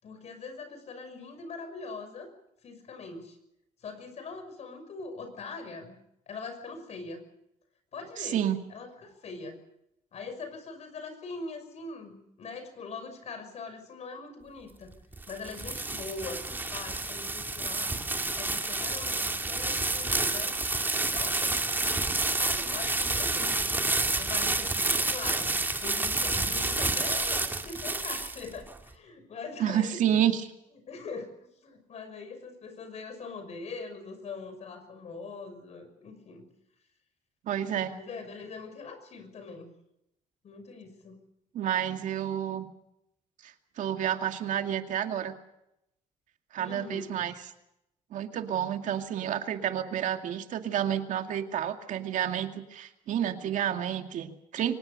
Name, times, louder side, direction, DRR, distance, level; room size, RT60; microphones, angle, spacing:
voice 1, 0.0-2.3 2.6-3.4 3.8-6.0 6.3-7.3 7.9-8.4 8.7-9.6 10.1-14.9 15.3-18.0 18.3-20.6 21.1-22.0 22.4-23.7 24.2-30.0 30.9-31.3 31.6-36.5 37.9-39.7 40.4-41.2 46.6-47.3 49.6-49.9, left 4 dB, 55° left, 8 dB, 6.0 m, -42 dB
voice 2, 8.2-8.6 29.6-30.4 37.4-38.0 41.5-42.7 43.4-45.3 46.5-47.3 48.1-54.7, right 10 dB, 70° right, 6 dB, 2.3 m, -30 dB
sound 1, 14.9-28.7, right 2 dB, 15° right, 2.4 m, -29 dB
24.0 x 19.5 x 6.8 m, 0.83 s
cardioid pair, 110°, 14 cm